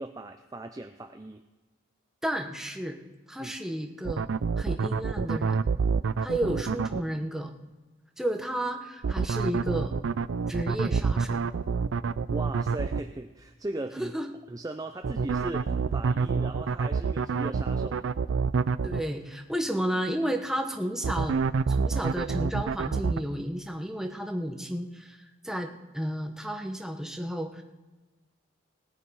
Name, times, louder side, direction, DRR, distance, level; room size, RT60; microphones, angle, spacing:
voice 1, 0.0-1.4 3.4-3.5 12.3-14.1 14.5-18.0, right 2 dB, 20° right, 6 dB, 0.4 m, -38 dB
voice 2, 2.2-3.0 3.3-4.3 4.6-5.6 6.2-7.5 8.2-9.9 10.5-11.4 14.0-14.3 18.8-21.4 21.7-25.7 25.9-27.6, equal, 5° right, 4 dB, 1.0 m, -32 dB
sound 1, 4.1-7.0 9.0-13.0 15.0-19.0 21.0-23.2, right 5 dB, 80° right, 0.4 m, -27 dB
18.5 x 9.9 x 4.8 m, 1.2 s
head